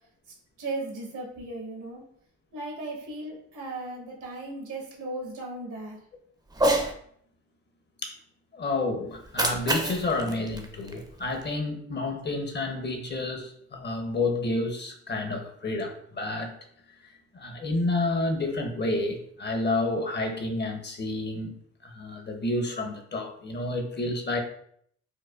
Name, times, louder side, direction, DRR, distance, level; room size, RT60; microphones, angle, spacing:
voice 1, 0.6-2.0 2.5-6.0, right 2 dB, 80° right, 0 dB, 1.1 m, -36 dB
Cat, 6.5-6.9 9.1-11.5, right 1 dB, 15° right, 0.5 m, -28 dB
voice 2, 8.5-16.5 17.3-21.5 21.8-24.4, left 2 dB, 35° left, 4 dB, 0.6 m, -30 dB
4.6 x 2.1 x 2.3 m, 0.65 s
cardioid pair, 90°, 30 cm